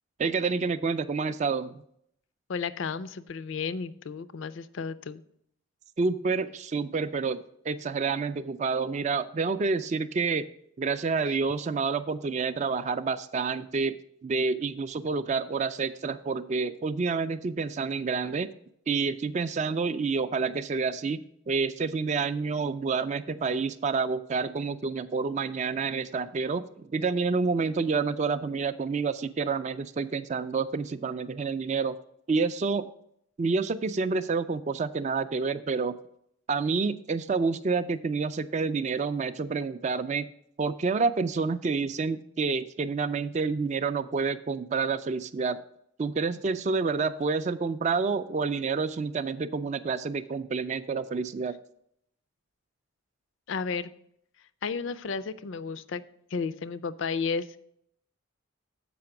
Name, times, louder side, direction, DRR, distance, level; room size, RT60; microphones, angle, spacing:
voice 1, 0.2-1.8 6.0-7.4 7.6-10.5 10.8-13.9 14.2-18.5 18.9-32.0 32.3-32.9 33.4-36.0 36.5-40.3 40.6-45.6 46.0-51.6, right 4 dB, 35° right, 12 dB, 0.3 m, -28 dB
voice 2, 2.5-5.2 11.3-11.4 53.5-53.9 54.6-56.0 56.3-57.5, left 5 dB, 65° left, 15 dB, 0.4 m, -33 dB
7.7 x 5.1 x 5.9 m, 0.71 s
head